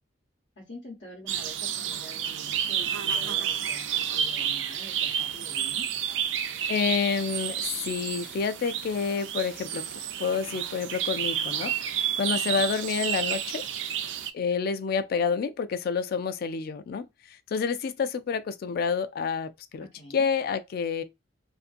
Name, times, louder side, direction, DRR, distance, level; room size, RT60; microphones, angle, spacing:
voice 1, 0.6-5.9 12.3-12.6 19.8-20.2, left 1 dB, 90° left, 1.0 m, -46 dB
sound 1, 1.3-14.3, right 9 dB, 80° right, 0.4 m, -30 dB
voice 2, 6.7-9.8 10.2-13.6 14.3-17.1 17.5-19.9 20.1-21.0, left 6 dB, 55° left, 0.3 m, -28 dB
2.5 x 2.5 x 2.4 m
head